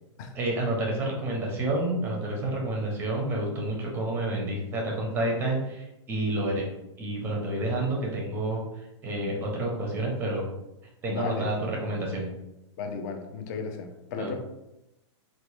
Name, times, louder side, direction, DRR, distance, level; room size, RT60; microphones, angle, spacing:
voice 1, 0.3-6.7 7.0-10.4 11.0-12.3 14.2-14.3, right 1 dB, 15° right, -1 dB, 0.6 m, -29 dB
voice 2, 11.1-11.5 12.8-14.3, left 5 dB, 35° left, 4 dB, 0.4 m, -35 dB
4.1 x 2.1 x 3.0 m, 0.92 s
supercardioid pair, 165°, 16 cm